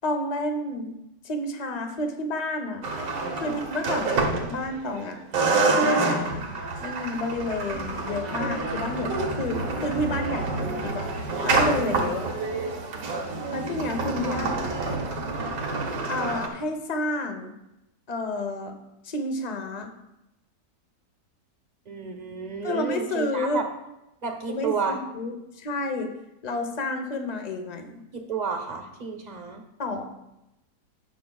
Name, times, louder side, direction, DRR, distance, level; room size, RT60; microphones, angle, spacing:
voice 1, 0.0-0.9 1.2-2.8 3.4-4.2 4.5-5.2 5.7-6.5 6.8-11.1 11.4-12.3 13.5-14.6 16.1-17.5 18.1-18.7 19.0-19.9 22.6-23.7 24.5-26.1 26.4-28.0 29.8-30.1, left 2 dB, 35° left, 5 dB, 0.7 m, -30 dB
sound 1, 2.8-5.0 5.3-16.5, right 3 dB, 85° right, 1.8 m, -27 dB
voice 2, 21.9-23.7 24.2-25.0 28.1-29.6, right 5 dB, 30° right, 4 dB, 0.9 m, -31 dB
17.5 x 5.9 x 2.3 m, 0.91 s
omnidirectional pair, 1.9 m